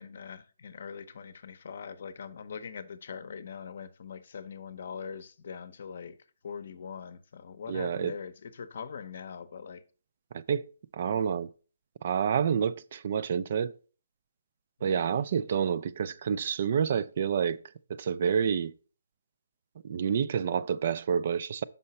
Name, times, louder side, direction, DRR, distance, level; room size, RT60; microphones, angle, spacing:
voice 1, 0.0-6.1 6.4-9.8 11.0-11.4 14.8-15.1, left 6 dB, 55° left, 0.7 m, -42 dB
voice 2, 7.7-8.2 10.3-10.7 10.9-11.5 12.0-13.7 14.8-17.6 17.9-18.7 19.8-21.6, right 7 dB, 45° right, 0.3 m, -28 dB
5.7 x 5.5 x 4.1 m
hypercardioid pair, 165°, 0 cm